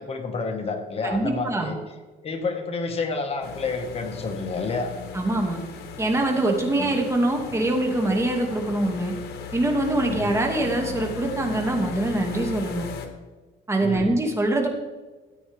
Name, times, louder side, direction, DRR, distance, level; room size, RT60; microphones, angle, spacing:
voice 1, 0.0-1.8 2.2-5.0 6.8-6.9 10.1-10.3 13.8-14.1, left 4 dB, 35° left, 4 dB, 1.7 m, -29 dB
voice 2, 1.0-1.7 5.1-5.6 6.0-9.1 9.5-12.9 13.7-14.7, right 2 dB, 15° right, 1 dB, 2.3 m, -24 dB
sound 1, 3.4-13.1, left 6 dB, 70° left, 1.6 m, -37 dB
13.5 x 9.2 x 3.5 m, 1.3 s
cardioid pair, 110°, 17 cm